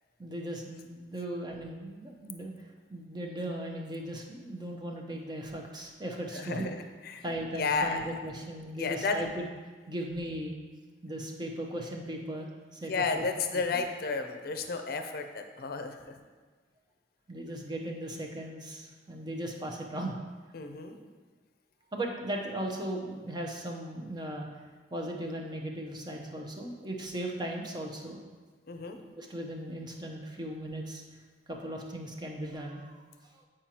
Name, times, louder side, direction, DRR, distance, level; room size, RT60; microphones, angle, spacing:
voice 1, 0.2-2.5 2.9-6.7 7.2-9.5 9.9-10.5 11.0-12.9 13.7-13.8 17.3-20.1 21.9-24.5 24.9-28.2 29.1-31.0 31.5-33.0 33.3-33.4, right 1 dB, 25° right, 0 dB, 0.7 m, -37 dB
voice 2, 6.3-6.7 7.0-7.2 7.6-8.2 8.8-9.2 12.9-16.0 20.5-21.0 28.7-29.0, left 4 dB, 60° left, 6 dB, 0.5 m, -32 dB
8.8 x 4.9 x 2.9 m, 1.4 s
head